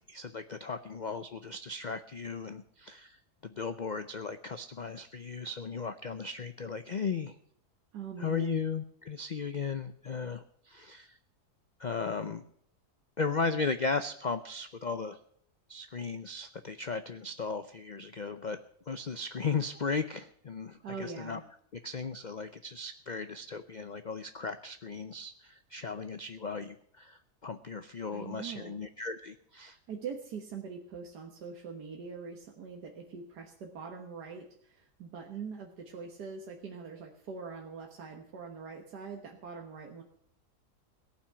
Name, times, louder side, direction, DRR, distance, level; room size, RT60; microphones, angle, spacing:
voice 1, 0.1-3.2 3.4-7.4 8.2-11.2 11.8-12.4 13.2-15.2 15.7-18.6 18.9-21.4 21.8-29.8, left 4 dB, 85° left, 10 dB, 0.4 m, -36 dB
voice 2, 7.9-8.6 20.8-21.4 28.1-28.7 29.9-40.0, right 5 dB, 90° right, 1 dB, 1.9 m, -43 dB
17.5 x 6.0 x 9.8 m, 0.66 s
omnidirectional pair, 1.7 m